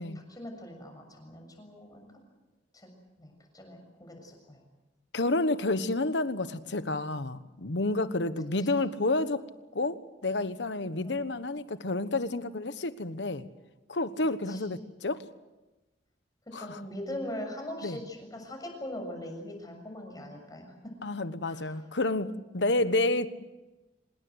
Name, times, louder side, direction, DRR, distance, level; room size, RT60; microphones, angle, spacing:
voice 1, 0.0-2.1 2.7-2.9 3.2-4.6 8.6-8.7 11.0-11.2 14.5-14.6 16.6-20.9 21.4-21.8 22.6-22.7, left 1 dB, 20° left, 7.0 m, -41 dB
voice 2, 5.1-9.4 9.7-13.4 13.9-15.2 16.5-16.8 17.8-18.0 21.0-23.3, left 2 dB, 80° left, 1.2 m, -30 dB
25.5 x 20.5 x 8.1 m
head